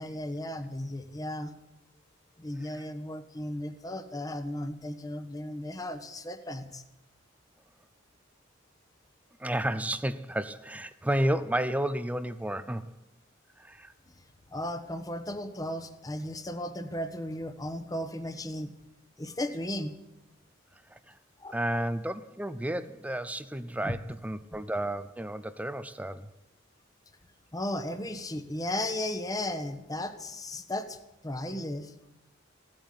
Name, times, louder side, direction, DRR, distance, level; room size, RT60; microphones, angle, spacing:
voice 1, 0.0-1.6 2.4-6.8 14.5-18.7 19.2-20.0 21.4-21.8 23.8-24.0 27.5-31.9, left 1 dB, 20° left, 1.1 m, -35 dB
voice 2, 9.4-12.9 13.6-13.9 20.9-21.2 21.5-26.3, right 1 dB, 5° right, 0.5 m, -32 dB
16.0 x 8.9 x 9.4 m
head